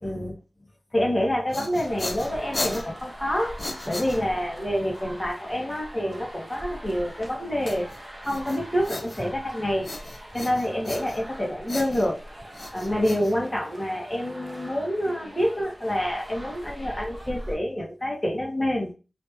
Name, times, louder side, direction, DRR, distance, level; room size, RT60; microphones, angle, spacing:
voice 1, 0.0-0.3 0.9-3.6 3.9-7.9 8.2-9.9 10.3-12.2 12.7-18.9, equal, 20° left, -1 dB, 1.6 m, -27 dB
sound 1, 1.2-4.6 7.7-9.5 9.8-11.4 11.7-13.9, left 2 dB, 45° left, 0.7 m, -36 dB
sound 2, 1.8-17.6, equal, 10° right, 1.0 m, -42 dB
5.0 x 2.8 x 2.7 m, 0.31 s
wide cardioid pair, 65°, 0 cm